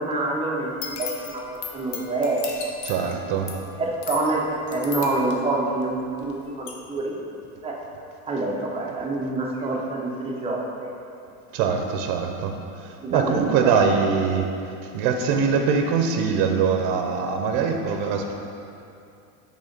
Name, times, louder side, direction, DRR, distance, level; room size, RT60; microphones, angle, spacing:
voice 1, 0.0-2.4 3.8-4.4 4.7-7.2 7.6-7.8 8.3-10.9 13.0-13.8, right 2 dB, 15° right, -3 dB, 0.6 m, -26 dB
sound 1, 0.6-6.3 6.7-6.8, left 6 dB, 85° left, 1.0 m, -36 dB
voice 2, 2.8-3.6 11.5-18.3, right 5 dB, 60° right, 4 dB, 0.7 m, -23 dB
6.1 x 3.7 x 5.1 m, 2.6 s
cardioid pair, 145°, 45 cm